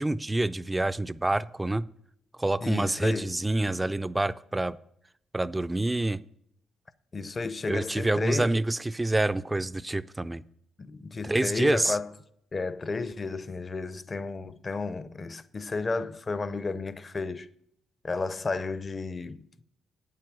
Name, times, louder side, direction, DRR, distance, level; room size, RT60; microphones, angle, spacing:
voice 1, 0.0-1.8 2.4-4.8 5.3-6.2 7.7-10.4 11.2-12.0, right 2 dB, 15° right, 0.4 m, -27 dB
voice 2, 2.6-3.3 7.1-8.6 10.8-12.1 12.5-17.5 18.0-19.6, left 3 dB, 30° left, 0.6 m, -32 dB
8.6 x 7.7 x 6.1 m
cardioid pair, 90°, 0 cm